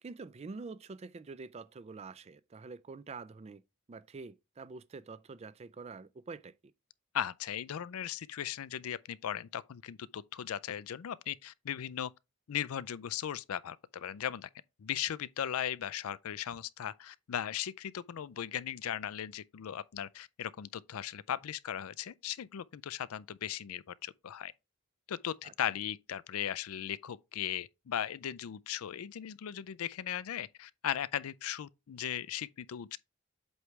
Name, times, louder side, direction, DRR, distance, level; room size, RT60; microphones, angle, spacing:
voice 1, 0.0-3.6 3.9-6.5 25.4-25.5, right 4 dB, 30° right, 0.3 m, -46 dB
voice 2, 7.1-12.1 12.5-14.5 14.8-24.5 25.1-33.0, left 10 dB, 85° left, 0.4 m, -37 dB
8.0 x 3.2 x 4.7 m
head